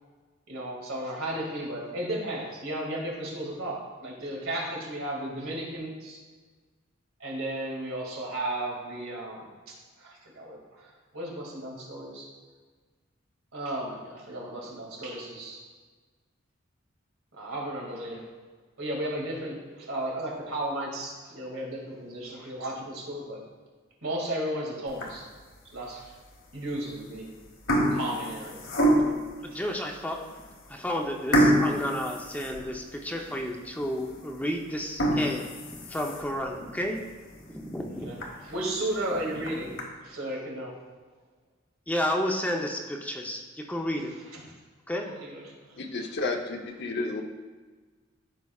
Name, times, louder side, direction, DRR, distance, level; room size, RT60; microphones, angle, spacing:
voice 1, 0.5-6.2 7.2-12.3 13.5-15.6 17.3-18.2 18.8-23.4 24.0-25.2 25.7-26.1 26.5-27.4 27.9-28.6 38.0-39.8 40.0-40.7 44.3-44.4 45.0-45.8, right 1 dB, 85° right, -3 dB, 2.2 m, -34 dB
sound 1, 24.9-25.4 26.0-26.1 26.9-27.2 27.5-29.3 29.9-30.0 30.4-30.5 31.3-33.1 33.5-33.6 34.1-34.2 34.8-36.4 36.9-37.0 37.4-37.5 37.8-37.9 38.2-38.3 39.2-39.8, equal, 80° left, 1.3 m, -26 dB
voice 2, 29.4-30.2 30.7-35.4 35.8-37.0 37.4-38.2 39.3-39.7 41.9-43.4 43.7-44.1 44.9-45.1, equal, 10° left, 1 dB, 0.6 m, -31 dB
voice 3, 45.8-47.2, left 3 dB, 55° left, 3 dB, 0.8 m, -31 dB
14.0 x 4.8 x 2.4 m, 1.4 s
head